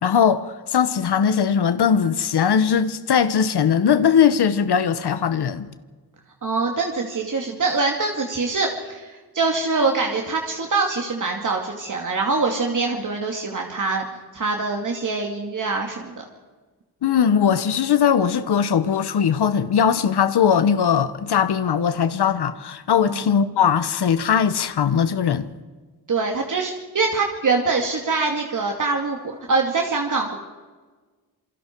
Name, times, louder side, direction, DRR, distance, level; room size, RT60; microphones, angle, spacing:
voice 1, 0.0-5.7 17.0-25.5, left 7 dB, 85° left, 1.2 m, -20 dB
voice 2, 6.4-14.0 14.3-16.2 23.1-23.2 26.1-30.4, right 3 dB, 50° right, 2.5 m, -24 dB
27.5 x 24.5 x 4.7 m
wide cardioid pair, 120°, 38 cm